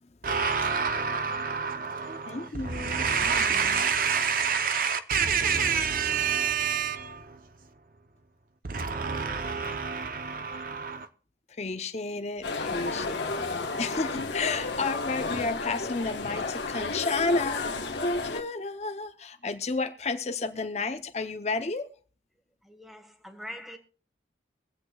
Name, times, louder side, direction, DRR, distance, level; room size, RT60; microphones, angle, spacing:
voice 1, 0.2-7.5 8.6-11.1, right 6 dB, 50° right, 0.7 m, -28 dB
voice 2, 2.3-3.8 11.6-17.6 17.9-21.9, left 3 dB, 35° left, 0.6 m, -32 dB
sound 1, 12.4-18.4, left 3 dB, 80° left, 1.2 m, -32 dB
voice 3, 22.6-23.8, equal, ahead, 1.2 m, -43 dB
24.0 x 8.1 x 2.3 m
head